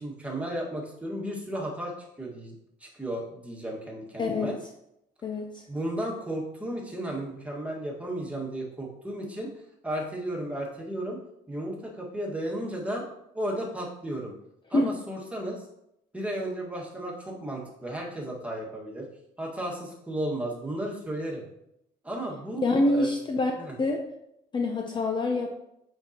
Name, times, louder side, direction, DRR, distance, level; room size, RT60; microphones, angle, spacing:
voice 1, 0.0-2.5 2.8-4.6 5.7-9.5 9.8-11.2 11.5-13.0 13.3-14.3 14.7-15.6 16.1-19.1 19.4-21.4 22.0-23.1 23.6-23.7, right 1 dB, 10° right, -3 dB, 1.8 m, -34 dB
voice 2, 4.2-4.5 5.2-5.6 14.7-14.9 22.6-23.5 23.8-24.0 24.5-25.6, left 2 dB, 25° left, 3 dB, 0.6 m, -26 dB
7.9 x 5.3 x 3.0 m, 0.81 s
cardioid pair, 110°, 17 cm